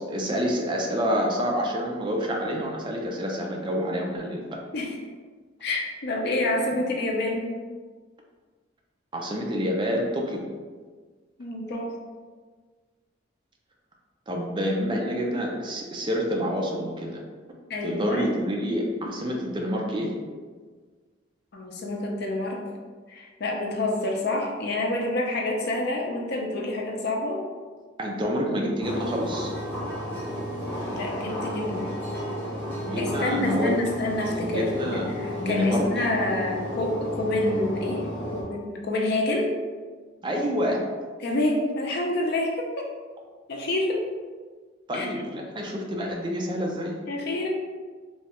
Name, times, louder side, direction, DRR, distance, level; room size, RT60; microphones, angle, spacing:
voice 1, 0.0-4.6 6.7-6.8 9.1-10.4 14.3-17.2 17.8-20.1 28.0-29.5 32.8-33.8 34.3-35.9 40.2-40.8 44.9-46.9, equal, 25° right, 0 dB, 0.4 m, -28 dB
voice 2, 5.6-7.5 11.4-12.0 17.7-18.4 21.5-22.6 23.1-27.4 30.9-31.9 33.0-38.1 38.3-39.6 41.2-42.9 43.5-44.1 44.9-45.1 47.1-47.5, left 1 dB, 60° left, 0 dB, 0.5 m, -28 dB
sound 1, 28.8-38.4, left 1 dB, 10° left, 0.7 m, -33 dB
3.1 x 2.3 x 2.9 m, 1.5 s
head